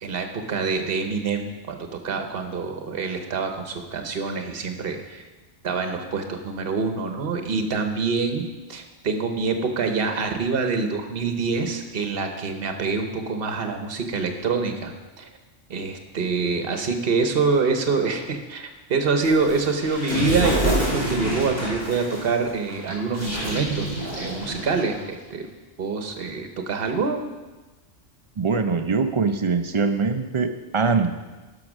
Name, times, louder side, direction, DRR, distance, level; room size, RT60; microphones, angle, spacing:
voice 1, 0.0-5.2 5.6-15.3 15.7-23.9 24.2-25.5 25.8-27.3, right 4 dB, 55° right, 5 dB, 1.2 m, -26 dB
sound 1, 19.2-25.1, right 1 dB, 35° left, 3.1 m, -27 dB
voice 2, 28.4-31.2, right 4 dB, 35° right, 7 dB, 0.5 m, -23 dB
11.5 x 6.0 x 6.1 m, 1.2 s
omnidirectional pair, 1.2 m